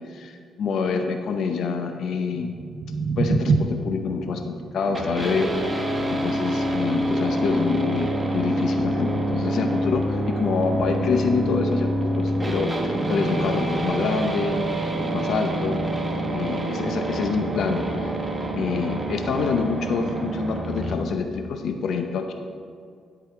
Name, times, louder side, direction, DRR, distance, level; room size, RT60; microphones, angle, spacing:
voice 1, 0.0-2.5 3.2-5.5 6.1-14.6 15.1-15.8 16.3-18.1 18.5-22.3, left 5 dB, 70° left, 5 dB, 0.7 m, -26 dB
sound 1, 2.3-8.4, right 4 dB, 60° right, 0.5 m, -29 dB
sound 2, 4.9-20.9, right 1 dB, 20° right, 1.2 m, -26 dB
11.5 x 4.9 x 4.9 m, 2.2 s
cardioid pair, 90°, 0 cm